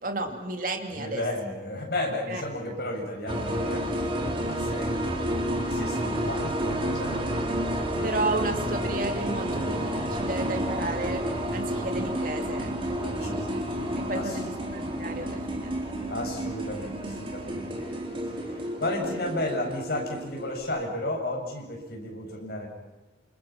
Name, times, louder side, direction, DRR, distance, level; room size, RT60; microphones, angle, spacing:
voice 1, 0.0-1.2 2.3-2.4 8.0-12.7 13.0-13.5 14.0-15.8, right 2 dB, 45° right, 5 dB, 2.7 m, -33 dB
voice 2, 0.9-5.4 5.7-7.4 12.9-13.5 14.1-14.4 16.1-17.9 18.6-22.7, left 1 dB, 55° left, 0 dB, 7.8 m, -33 dB
sound 1, 3.3-20.6, equal, 30° right, 3.7 m, -30 dB
28.5 x 28.0 x 6.0 m, 1.1 s
head